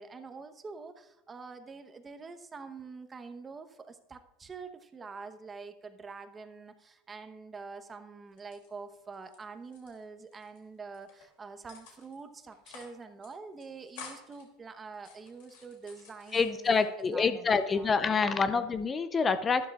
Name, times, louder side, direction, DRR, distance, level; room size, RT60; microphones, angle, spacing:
voice 1, 0.0-17.9, right 4 dB, 25° right, 9 dB, 0.9 m, -46 dB
sound 1, 8.3-9.4 9.6-10.6 10.9-11.3 11.7-12.2 12.5-13.0 13.2-13.3 13.6-14.4 14.9-17.1 17.5-18.2, left 6 dB, 70° left, 2.7 m, -51 dB
voice 2, 16.3-19.7, left 5 dB, 25° left, 11 dB, 0.6 m, -27 dB
12.5 x 11.5 x 2.4 m, 0.92 s
hypercardioid pair, 90°, 0 cm